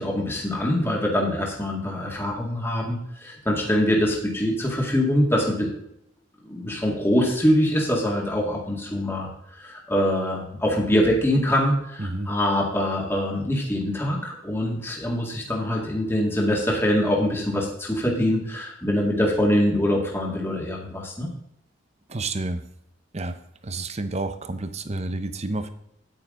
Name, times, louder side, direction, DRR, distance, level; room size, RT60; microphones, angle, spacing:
voice 1, 0.0-5.7 6.5-9.3 9.6-21.3, equal, 15° left, -2 dB, 2.0 m, -24 dB
voice 2, 22.1-22.6 23.1-23.3 23.6-25.7, right 2 dB, 35° right, 10 dB, 0.9 m, -29 dB
9.6 x 9.4 x 3.8 m, 0.76 s
head